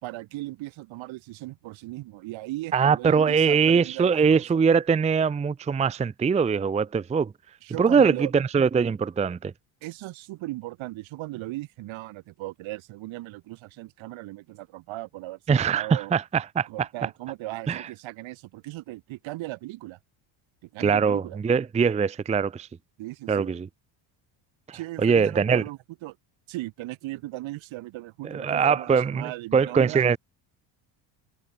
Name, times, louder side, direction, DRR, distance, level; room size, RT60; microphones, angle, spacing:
voice 1, 0.0-4.6 7.6-8.3 9.8-16.1 16.7-20.0 20.7-21.4 23.0-23.5 24.7-26.2 26.5-30.1, right 18 dB, 70° right, 4.9 m, -37 dB
voice 2, 2.7-7.3 7.8-9.5 15.5-16.9 17.7-17.9 20.8-22.7 23.3-23.7 24.7-25.6 28.2-30.2, right 6 dB, 15° right, 0.6 m, -22 dB
cardioid pair, 145°, 49 cm